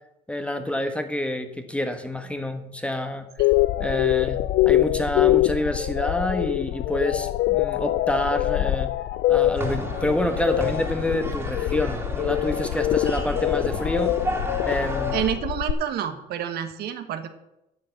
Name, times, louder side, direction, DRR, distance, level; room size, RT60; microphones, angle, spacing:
voice 1, 0.3-3.3 3.8-4.4 4.7-8.9 9.3-14.1 14.6-15.2, left 1 dB, 5° left, 7 dB, 1.3 m, -27 dB
sound 1, 3.4-15.7, left 15 dB, 70° left, 0.4 m, -24 dB
sound 2, 9.6-15.3, right 2 dB, 15° right, 2.5 m, -33 dB
voice 2, 15.1-17.3, right 10 dB, 70° right, 8 dB, 1.4 m, -28 dB
10.5 x 6.4 x 8.0 m, 0.86 s
cardioid pair, 110°, 17 cm